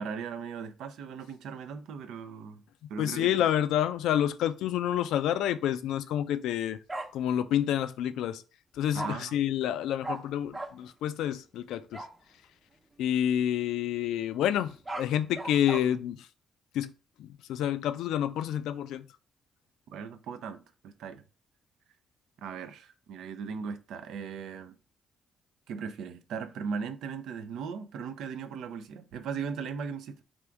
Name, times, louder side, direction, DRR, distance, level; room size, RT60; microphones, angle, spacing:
voice 1, 0.0-2.6 2.9-3.3 8.9-9.4 19.9-21.2 22.4-24.8 25.7-30.2, right 6 dB, 80° right, 0.5 m, -38 dB
voice 2, 3.0-6.8 7.1-8.4 8.7-12.0 13.0-16.3 16.7-16.9 17.2-19.0, left 11 dB, 85° left, 0.3 m, -28 dB
Bark, 6.9-7.1 8.9-9.1 10.0-10.2 10.5-10.7 11.9-12.1 14.6-15.8, right 2 dB, 20° right, 0.7 m, -36 dB
3.5 x 2.6 x 4.5 m
cardioid pair, 90°, 0 cm